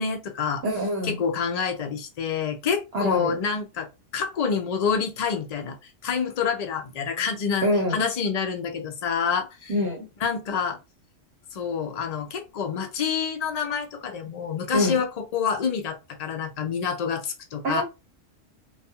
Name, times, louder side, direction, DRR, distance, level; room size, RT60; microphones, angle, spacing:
voice 1, 0.0-0.6 1.0-3.9 4.1-5.8 6.0-9.7 10.2-10.8 11.5-17.8, left 6 dB, 75° left, 0.3 m, -27 dB
voice 2, 0.6-1.1 2.9-3.3 7.6-8.1 9.7-10.1 14.7-15.0 17.6-17.8, left 1 dB, 60° right, 0.9 m, -25 dB
2.3 x 2.3 x 2.7 m
omnidirectional pair, 1.3 m